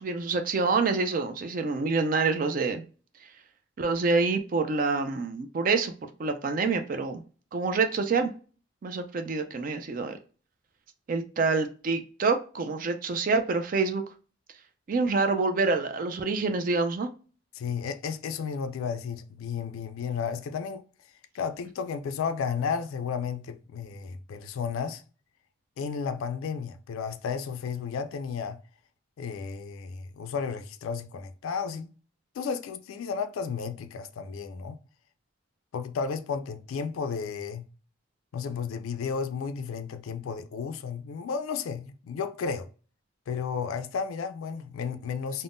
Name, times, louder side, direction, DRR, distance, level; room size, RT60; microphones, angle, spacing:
voice 1, 0.0-2.8 3.8-5.9 6.2-7.2 7.5-8.3 8.8-10.2 11.1-14.0 14.9-17.1, right 4 dB, 40° right, 0.3 m, -27 dB
voice 2, 17.5-20.8 21.3-25.0 25.8-28.6 29.2-31.9 32.3-34.8 35.7-37.7 38.3-42.7 43.3-45.4, left 6 dB, 85° left, 0.3 m, -33 dB
3.5 x 2.1 x 2.5 m
head